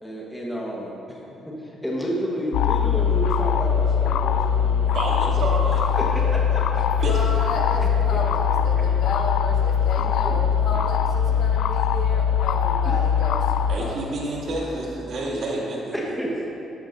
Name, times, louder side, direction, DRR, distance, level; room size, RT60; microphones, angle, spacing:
voice 1, 0.0-1.2 1.5-5.1 6.0-6.9 7.7-8.2 10.2-10.3 15.9-16.5, equal, 5° left, -5 dB, 1.4 m, -31 dB
sound 1, 2.5-13.8, left 7 dB, 85° left, 0.3 m, -21 dB
voice 2, 4.9-5.8 7.0-7.1 13.7-16.0, right 2 dB, 60° right, -5 dB, 2.5 m, -29 dB
voice 3, 6.8-14.1, left 2 dB, 70° left, -1 dB, 1.5 m, -33 dB
13.5 x 10.0 x 2.7 m, 3.0 s
cardioid pair, 125°, 0 cm